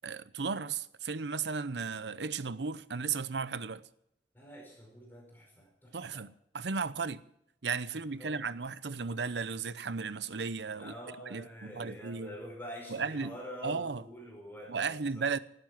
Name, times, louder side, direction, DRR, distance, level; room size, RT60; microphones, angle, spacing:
voice 1, 0.0-3.9 5.9-7.2 7.6-12.4 12.9-13.4 13.6-14.0 14.7-15.4, right 5 dB, 80° right, 0.7 m, -35 dB
voice 2, 4.3-6.2 7.9-8.4 10.8-15.3, equal, 10° left, 5.1 m, -46 dB
18.5 x 12.0 x 6.0 m
head